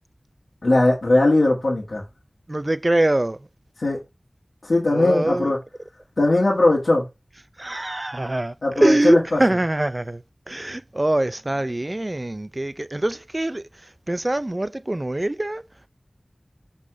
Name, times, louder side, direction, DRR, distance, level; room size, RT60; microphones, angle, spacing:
voice 1, 0.6-2.0 3.8-4.0 4.6-5.6 6.2-7.0 8.6-9.4, left 2 dB, 80° left, 1.5 m, -19 dB
voice 2, 2.5-3.5 4.9-5.5 7.6-13.7 14.1-15.6, right 1 dB, 35° right, 0.4 m, -23 dB
5.4 x 4.8 x 3.7 m
wide cardioid pair, 45°, 0 cm